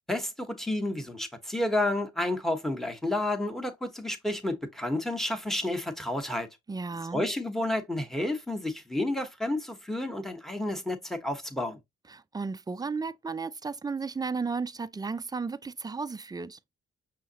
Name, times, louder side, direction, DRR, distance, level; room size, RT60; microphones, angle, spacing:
voice 1, 0.1-6.5 7.1-11.8, left 1 dB, ahead, 1.1 m, -30 dB
voice 2, 6.7-7.2 12.1-16.6, right 4 dB, 15° right, 0.3 m, -34 dB
5.5 x 2.8 x 2.7 m
cardioid pair, 65°, 29 cm